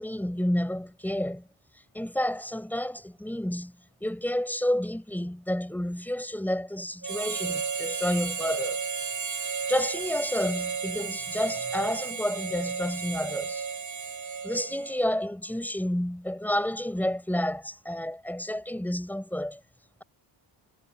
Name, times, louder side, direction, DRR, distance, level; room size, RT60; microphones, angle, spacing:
voice 1, 0.0-1.5 1.9-3.7 4.0-8.8 9.7-13.6 14.4-19.6, left 1 dB, 5° left, 6.7 m, -30 dB
Harmonica, 7.0-15.1, right 5 dB, 40° right, 7.0 m, -33 dB
cardioid pair, 115°, 48 cm